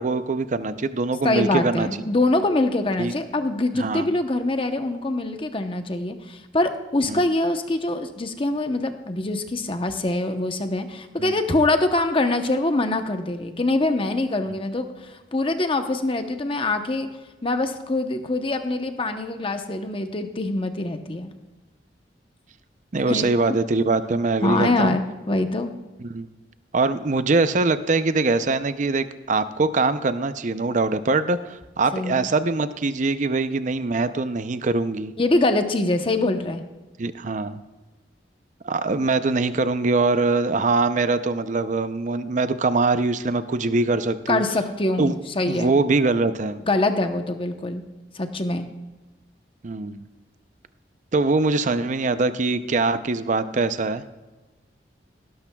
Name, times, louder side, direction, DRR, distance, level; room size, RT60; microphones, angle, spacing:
voice 1, 0.0-1.9 3.0-3.2 3.7-4.1 7.1-7.3 11.2-11.3 22.9-25.0 26.0-26.3 26.7-35.1 37.0-37.6 38.6-44.4 45.0-45.1 45.5-46.6 49.6-50.0 51.1-54.0, right 3 dB, 45° right, 12 dB, 0.5 m, -23 dB
voice 2, 1.2-17.1 17.4-21.3 23.1-23.3 24.4-25.7 31.9-32.3 35.2-36.6 44.3-45.7 46.7-47.8 48.1-48.7, left 2 dB, 30° left, 7 dB, 0.8 m, -24 dB
17.5 x 12.0 x 2.3 m, 1.2 s
head